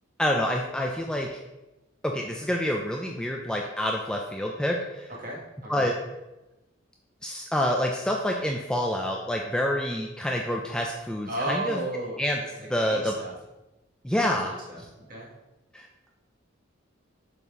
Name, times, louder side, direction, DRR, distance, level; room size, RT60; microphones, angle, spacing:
voice 1, 0.2-1.4 2.0-5.1 5.7-5.9 7.2-11.8 12.2-12.4 12.7-13.1 14.0-14.6 15.7-15.9, equal, 5° left, 1 dB, 0.3 m, -27 dB
voice 2, 5.2-6.0 11.3-13.3 14.2-14.8 15.1-15.3, right 1 dB, 45° right, -4 dB, 1.6 m, -35 dB
6.9 x 4.0 x 3.6 m, 1.0 s
head